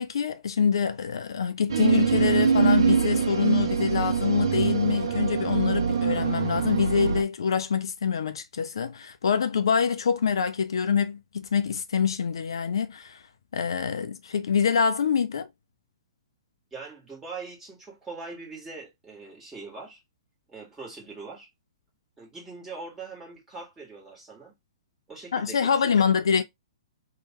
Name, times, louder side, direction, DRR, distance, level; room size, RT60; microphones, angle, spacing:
voice 1, 0.0-13.2 13.5-15.5 25.3-26.4, left 6 dB, 65° left, 0.3 m, -25 dB
sound 1, 1.7-7.2, right 6 dB, 60° right, 0.6 m, -24 dB
voice 2, 16.7-20.0 20.5-21.5 22.2-24.5 25.1-26.1, right 4 dB, 10° right, 1.4 m, -42 dB
2.9 x 2.2 x 2.8 m
figure-of-eight pair, 115°, 3 cm